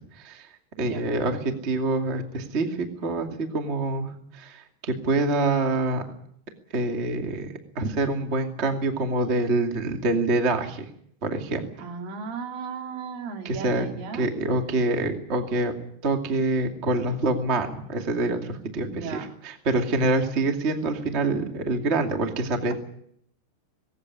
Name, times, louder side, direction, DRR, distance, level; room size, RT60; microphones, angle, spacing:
voice 1, 0.2-0.5 0.8-6.0 6.7-10.9 11.2-11.7 13.4-13.9 14.1-15.7 16.0-22.7, right 2 dB, 30° right, 4 dB, 1.1 m, -26 dB
voice 2, 11.8-14.3 18.8-19.3, right 5 dB, 85° right, 3 dB, 5.5 m, -35 dB
20.0 x 18.0 x 9.8 m, 0.68 s
omnidirectional pair, 5.6 m